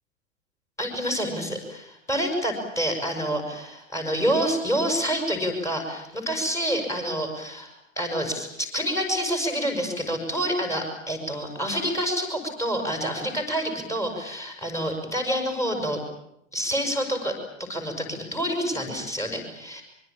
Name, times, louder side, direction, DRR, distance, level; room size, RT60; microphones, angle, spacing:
voice 1, 0.8-16.0 16.5-19.8, equal, 5° left, 3 dB, 6.5 m, -28 dB
24.5 x 24.0 x 8.8 m, 0.78 s
figure-of-eight pair, 110°, 39 cm